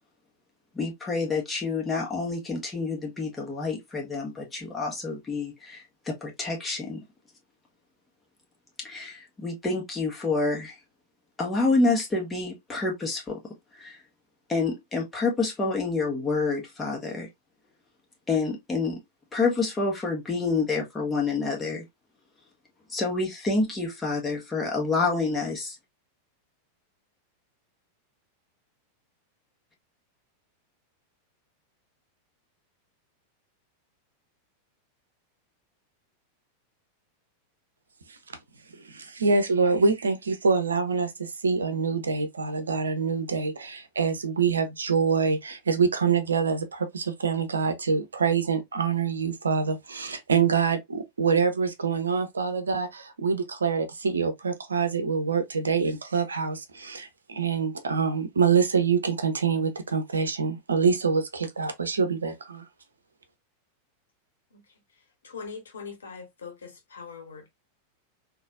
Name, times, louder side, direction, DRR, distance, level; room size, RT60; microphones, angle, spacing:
voice 1, 0.7-7.0 8.8-10.7 11.4-13.4 13.7-14.0 14.5-17.3 18.3-19.0 19.3-21.8 22.9-25.7, left 3 dB, 15° left, 1.5 m, -28 dB
voice 2, 38.7-62.7, right 5 dB, 75° right, 0.7 m, -25 dB
voice 3, 64.5-67.5, left 5 dB, 70° left, 1.4 m, -42 dB
3.9 x 2.7 x 2.5 m
figure-of-eight pair, 90°, 0 cm